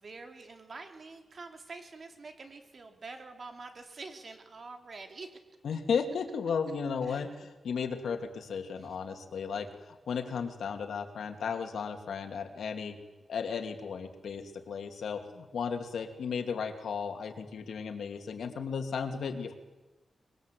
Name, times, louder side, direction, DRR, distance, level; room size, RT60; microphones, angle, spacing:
voice 1, 0.0-5.3 7.0-7.3 8.8-8.9, right 3 dB, 45° right, 6 dB, 3.5 m, -46 dB
voice 2, 5.6-13.0 13.3-19.5, left 6 dB, 85° left, 6 dB, 2.7 m, -35 dB
24.5 x 22.5 x 8.4 m, 1.1 s
wide cardioid pair, 120°, 0 cm